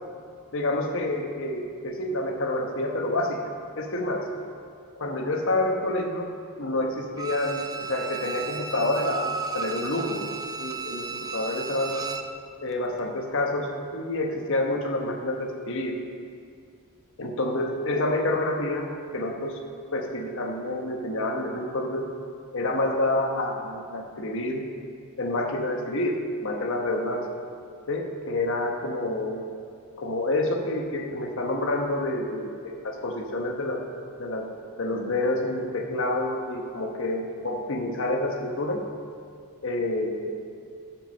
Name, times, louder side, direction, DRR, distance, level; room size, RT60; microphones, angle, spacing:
voice 1, 0.5-3.5 3.8-4.2 4.9-6.3 6.6-12.1 12.6-16.0 17.2-19.6 19.9-22.1 22.5-24.6 25.2-27.2 27.9-29.5 30.0-33.8 34.2-34.5 34.8-38.8 39.6-40.3, left 1 dB, 60° left, 2 dB, 1.1 m, -28 dB
Bowed string instrument, 7.2-12.4 12.7-12.8, right 4 dB, 15° right, 0.3 m, -34 dB
9.7 x 6.2 x 6.5 m, 2.3 s
head